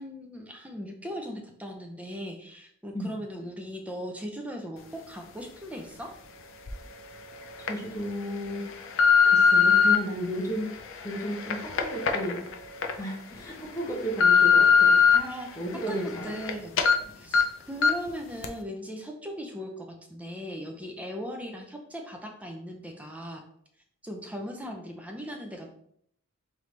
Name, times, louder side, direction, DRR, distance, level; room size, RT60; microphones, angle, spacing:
voice 1, 0.0-6.1 15.1-15.5 15.9-16.8 17.2-23.4 24.0-25.8, equal, 5° right, 2 dB, 0.4 m, -38 dB
sound 1, 6.7-6.8 7.4-7.7 8.3-10.0 10.6-12.9 13.3-13.4 13.9-15.2 15.6-16.5 16.8-16.9 17.3-17.4 17.8-18.1 18.4-18.5, left 6 dB, 60° left, 0.5 m, -21 dB
voice 2, 7.6-8.7 9.2-10.8 11.0-12.4 12.9-14.9 15.6-16.4, equal, 15° left, -2 dB, 0.9 m, -33 dB
3.8 x 3.3 x 3.2 m, 0.69 s
head